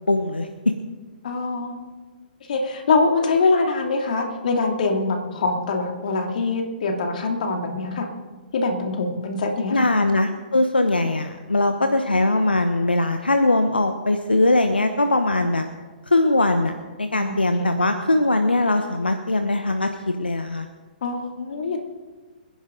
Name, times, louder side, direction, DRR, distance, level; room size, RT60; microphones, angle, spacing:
voice 1, 0.1-0.5 9.7-15.6 16.1-16.7 17.0-20.7, left 2 dB, 85° left, 7 dB, 1.0 m, -21 dB
voice 2, 1.2-1.9 2.5-8.1 8.5-9.9 17.1-17.9 21.0-21.8, left 3 dB, 55° left, 2 dB, 2.6 m, -24 dB
25.5 x 10.5 x 3.9 m, 1.3 s
figure-of-eight pair, 120°, 5 cm